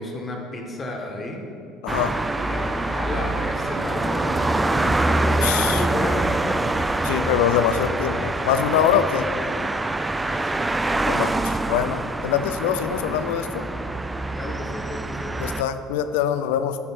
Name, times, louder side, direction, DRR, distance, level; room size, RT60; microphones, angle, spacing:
voice 1, 0.0-1.4 2.3-6.7 7.1-7.7 10.2-11.0 14.4-15.4, left 2 dB, 30° left, 1 dB, 1.7 m, -32 dB
voice 2, 1.8-2.2 5.4-5.8 7.0-9.3 11.1-13.7 15.4-16.8, left 9 dB, 85° left, 11 dB, 0.5 m, -23 dB
sound 1, 1.9-15.6, right 2 dB, 15° right, 0.4 m, -25 dB
sound 2, 1.9-11.1, right 3 dB, 45° right, 1.5 m, -42 dB
11.0 x 4.7 x 5.8 m, 2.7 s
supercardioid pair, 85°, 0 cm